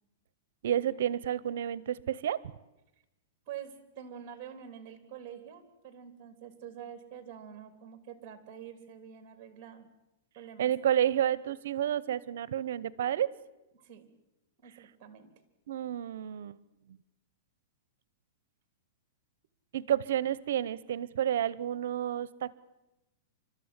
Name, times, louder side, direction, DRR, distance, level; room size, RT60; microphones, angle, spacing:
voice 1, 0.6-2.4 10.6-13.3 15.7-16.6 16.9-17.0 19.7-22.6, right 10 dB, 65° right, 20 dB, 0.9 m, -30 dB
voice 2, 3.5-9.9 10.3-10.7 13.7-14.0 14.6-15.3, right 9 dB, 25° right, 10 dB, 3.3 m, -46 dB
29.5 x 13.5 x 9.8 m, 0.96 s
supercardioid pair, 165°, 0 cm